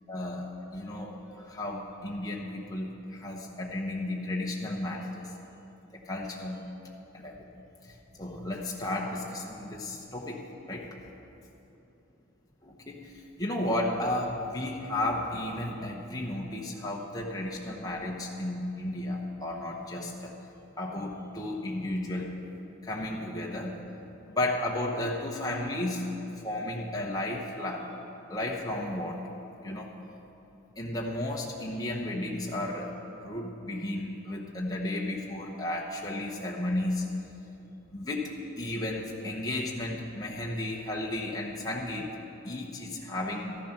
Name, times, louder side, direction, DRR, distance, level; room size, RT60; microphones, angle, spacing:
voice 1, 0.1-5.3 6.0-6.6 7.1-7.5 7.8-10.9 12.6-13.1 13.4-20.3 20.8-22.3 22.8-23.7 24.3-26.1 26.4-27.9 28.3-29.3 29.6-29.9 30.8-32.9 33.2-37.1 37.9-42.1 42.4-43.6, left 1 dB, 15° left, -2 dB, 0.9 m, -33 dB
13.5 x 11.5 x 5.8 m, 3.0 s
head